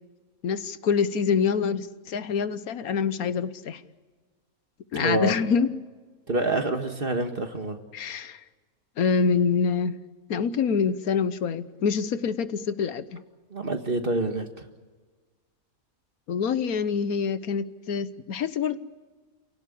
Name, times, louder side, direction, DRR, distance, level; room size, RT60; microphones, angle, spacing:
voice 1, 0.4-3.8 4.9-5.7 7.9-8.4 9.0-10.0 10.3-13.2 16.3-18.8, left 6 dB, 80° left, 13 dB, 1.5 m, -26 dB
voice 2, 4.9-5.3 6.3-7.8 13.5-14.5, right 2 dB, 40° right, 6 dB, 1.8 m, -27 dB
28.5 x 17.5 x 8.6 m, 1.4 s
omnidirectional pair, 1.5 m